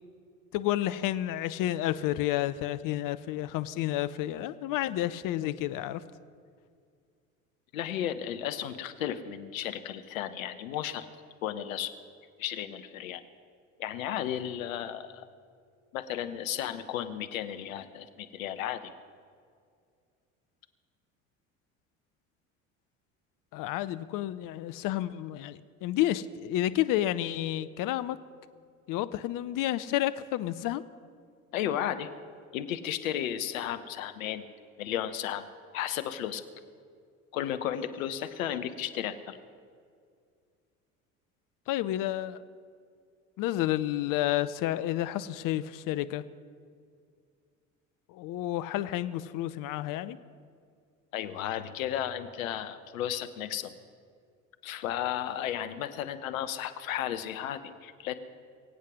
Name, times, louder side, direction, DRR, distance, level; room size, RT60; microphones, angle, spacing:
voice 1, 0.5-6.0 23.5-28.2 28.9-30.8 41.7-42.4 43.4-46.2 48.1-50.2, left 14 dB, 50° left, 14 dB, 0.7 m, -30 dB
voice 2, 7.7-11.1 11.4-12.0 12.4-13.2 13.8-15.3 15.9-18.9 31.5-32.1 32.5-34.4 34.8-35.4 35.7-36.4 37.3-39.4 51.1-53.7 54.6-58.2, left 10 dB, 75° left, 11 dB, 1.0 m, -34 dB
23.0 x 8.4 x 6.2 m, 2.2 s
hypercardioid pair, 60°, 41 cm